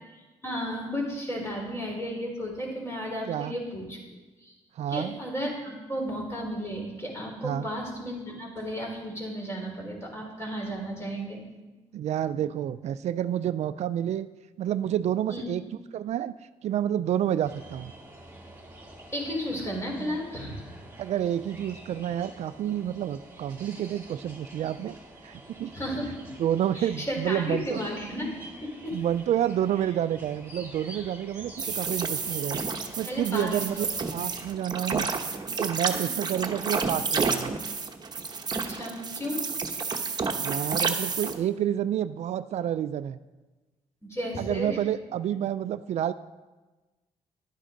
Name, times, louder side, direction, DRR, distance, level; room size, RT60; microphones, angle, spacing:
voice 1, 0.4-4.0 4.4-4.5 4.9-11.4 15.3-15.5 19.1-20.7 25.7-26.1 26.7-28.3 28.8-29.0 33.1-33.5 36.0-36.2 38.5-39.4 44.0-44.8, equal, 20° left, -2 dB, 4.1 m, -33 dB
voice 2, 4.8-5.2 7.4-7.7 11.9-14.3 14.6-15.6 15.9-16.3 16.6-17.9 21.0-25.0 25.2-25.7 26.4-27.8 28.9-32.6 33.0-33.9 34.1-35.1 35.6-37.5 40.4-43.2 44.4-46.1, right 10 dB, 65° right, 13 dB, 0.4 m, -29 dB
sound 1, 17.4-34.6, right 1 dB, 15° right, 3.1 m, -48 dB
sound 2, 31.6-41.4, right 4 dB, 35° right, 1.0 m, -30 dB
11.0 x 9.8 x 3.9 m, 1.2 s
cardioid pair, 85°, 12 cm